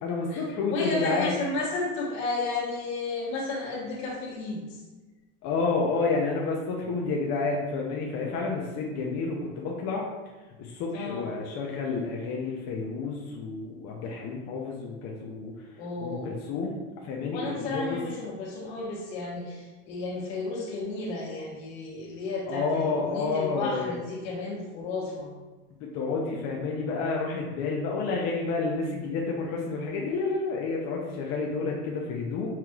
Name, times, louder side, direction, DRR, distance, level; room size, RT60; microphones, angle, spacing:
voice 1, 0.0-1.3 5.4-10.1 10.6-18.0 22.5-24.0 25.8-32.6, left 4 dB, 45° left, -2 dB, 0.6 m, -30 dB
voice 2, 0.7-4.8 10.9-11.3 15.8-16.4 17.3-25.3, left 3 dB, 70° left, -2 dB, 1.4 m, -33 dB
5.7 x 3.1 x 2.3 m, 1.2 s
supercardioid pair, 140°, 36 cm